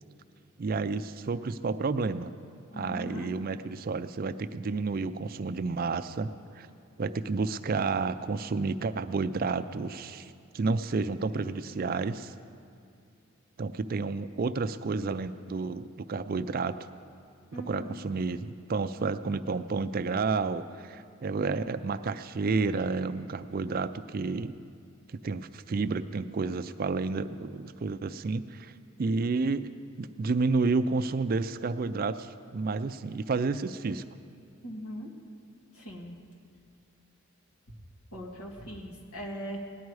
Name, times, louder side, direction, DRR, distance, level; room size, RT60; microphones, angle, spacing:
voice 1, 0.6-2.3 2.7-6.7 7.0-12.3 13.6-16.8 17.5-24.6 25.1-28.7 29.0-29.7 30.0-34.0, right 4 dB, 40° right, 12 dB, 0.3 m, -30 dB
voice 2, 2.7-3.3 17.5-17.9 34.6-35.1 35.7-36.2 38.1-39.6, equal, 85° left, -1 dB, 1.9 m, -39 dB
18.0 x 10.5 x 4.8 m, 2.4 s
head